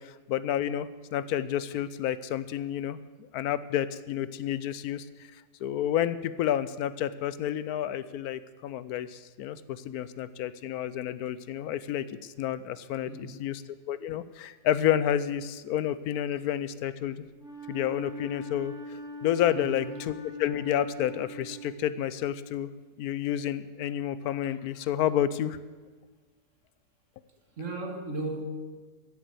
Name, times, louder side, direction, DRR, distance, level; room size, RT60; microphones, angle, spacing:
voice 1, 0.0-5.0 5.6-13.6 13.9-17.2 17.7-22.7 23.0-25.6, left 10 dB, 80° left, 16 dB, 1.1 m, -30 dB
voice 2, 13.1-13.4 19.5-19.9 27.6-28.4, right 2 dB, 55° right, 4 dB, 2.1 m, -36 dB
Wind instrument woodwind instrument, 17.4-22.1, equal, 5° right, 1.7 m, -42 dB
14.0 x 8.1 x 7.8 m, 1.3 s
omnidirectional pair, 1.6 m